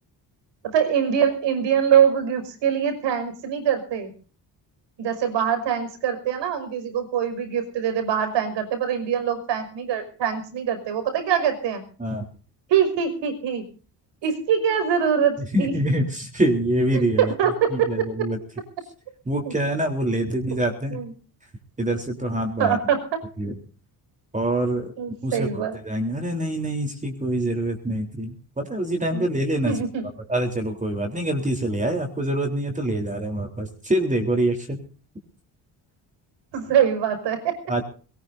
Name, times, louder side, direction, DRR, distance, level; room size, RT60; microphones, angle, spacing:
voice 1, 0.6-4.1 5.0-11.8 12.7-13.6 14.2-15.7 16.9-18.1 19.5-19.6 20.9-21.1 22.6-23.2 25.0-25.8 29.1-29.3 29.6-30.1 36.5-37.6, right 8 dB, 80° right, 8 dB, 5.6 m, -23 dB
voice 2, 15.4-17.3 17.7-18.4 19.3-21.0 21.8-22.8 23.4-23.6 24.3-24.9 25.2-29.8 30.3-34.8 37.7-37.8, right 1 dB, 15° right, 3 dB, 3.7 m, -25 dB
22.5 x 19.0 x 2.7 m, 0.39 s
cardioid pair, 110°, 42 cm